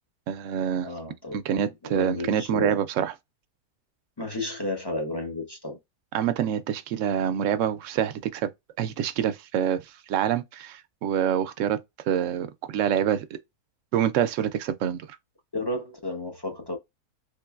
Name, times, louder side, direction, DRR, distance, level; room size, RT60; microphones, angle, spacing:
voice 1, 0.3-0.9 1.3-3.1 6.1-8.5 8.8-9.8 10.1-11.8 12.1-13.3 13.9-15.0, right 9 dB, 70° right, 0.7 m, -26 dB
voice 2, 0.8-2.8 4.2-5.8 15.5-16.8, left 2 dB, 35° left, 0.4 m, -33 dB
3.7 x 3.1 x 2.3 m
omnidirectional pair, 1.7 m